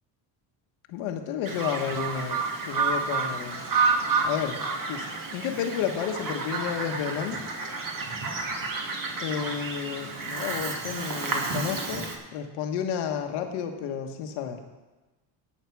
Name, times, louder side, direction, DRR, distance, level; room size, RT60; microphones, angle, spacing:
voice 1, 0.9-3.6 4.2-4.6 4.9-7.4 9.2-14.6, left 8 dB, 85° left, 5 dB, 1.5 m, -31 dB
Bird vocalization bird call bird song, 1.5-12.2, right 4 dB, 40° right, 2.2 m, -30 dB
18.0 x 6.6 x 4.7 m, 1.2 s
cardioid pair, 90°, 48 cm